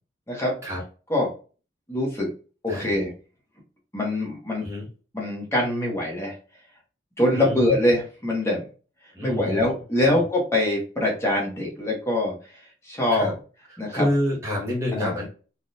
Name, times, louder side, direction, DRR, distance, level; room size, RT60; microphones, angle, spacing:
voice 1, 1.9-2.3 2.6-3.1 3.9-4.6 5.1-6.3 7.2-8.7 9.2-12.3 12.8-13.3 13.8-14.1 14.9-15.1, left 1 dB, 15° left, -2 dB, 1.1 m, -24 dB
voice 2, 7.3-7.8 9.1-9.6 10.0-10.2 13.1-13.3 13.7-15.3, left 1 dB, 15° right, -5 dB, 0.9 m, -28 dB
3.5 x 2.3 x 2.7 m, 0.36 s
head